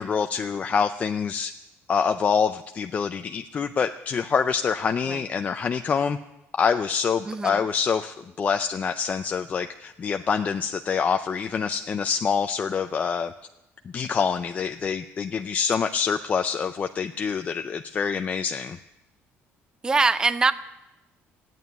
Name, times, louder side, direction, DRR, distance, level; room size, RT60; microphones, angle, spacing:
voice 1, 0.0-1.5 1.9-6.2 6.5-13.3 13.9-18.8, left 6 dB, 30° left, 7 dB, 0.5 m, -26 dB
voice 2, 7.3-7.6 19.8-20.5, right 3 dB, 15° right, 13 dB, 0.5 m, -22 dB
15.0 x 9.1 x 9.4 m, 0.94 s
cardioid pair, 145°, 5 cm